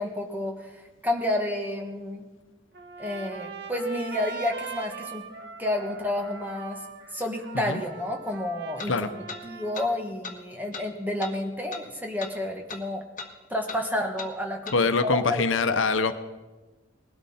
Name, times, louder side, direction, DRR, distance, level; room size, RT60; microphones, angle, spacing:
voice 1, 0.0-2.2 3.0-5.2 5.6-6.8 7.1-9.1 9.4-13.0 13.5-14.7 15.0-15.4, left 1 dB, 10° right, 2 dB, 1.4 m, -30 dB
Trumpet, 2.7-10.1, right 4 dB, 60° right, 1.3 m, -41 dB
sound 1, 7.2-7.3 8.8-8.9 9.3-9.4 9.7-9.9 10.2-10.4 10.7-10.9 11.2-11.3 11.7-11.9 12.2-12.4 12.7-12.8 13.2-13.3 13.7-13.8 14.2-14.3 14.7-14.8, left 4 dB, 40° left, 1.2 m, -38 dB
voice 2, 14.7-16.1, left 4 dB, 80° left, 10 dB, 0.9 m, -24 dB
19.5 x 12.5 x 4.3 m, 1.2 s
head